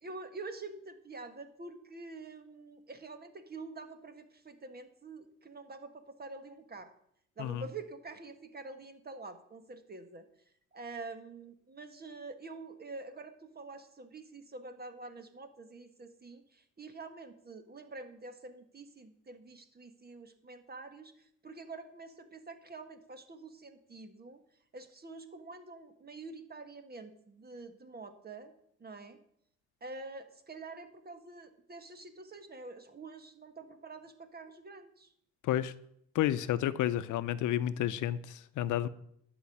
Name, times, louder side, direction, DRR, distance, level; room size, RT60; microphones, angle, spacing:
voice 1, 0.0-6.9 7.4-10.3 10.7-24.4 24.7-28.5 28.8-29.2 29.8-35.1, right 3 dB, 30° right, 8 dB, 1.6 m, -47 dB
voice 2, 36.1-38.9, left 12 dB, 80° left, 14 dB, 0.7 m, -31 dB
11.5 x 5.3 x 8.7 m, 0.71 s
cardioid pair, 90°, 30 cm